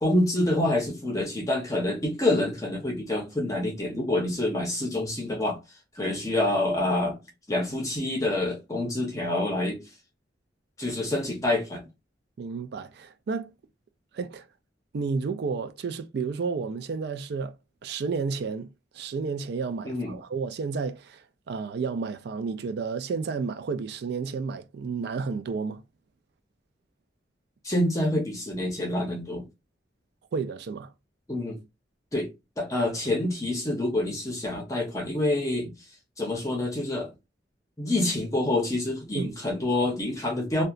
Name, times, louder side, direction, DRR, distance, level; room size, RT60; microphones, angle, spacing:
voice 1, 0.0-5.6 6.0-7.2 7.5-9.8 10.8-11.9 19.8-20.1 27.6-29.4 31.3-31.6 32.1-32.3 32.6-35.7 36.2-37.1 37.8-40.6, left 1 dB, 20° left, 0.7 m, -27 dB
voice 2, 12.4-13.5 14.1-14.5 14.9-17.6 17.8-25.8 30.3-30.9 39.1-39.4, right 5 dB, 60° right, 0.3 m, -31 dB
2.8 x 2.1 x 2.4 m
head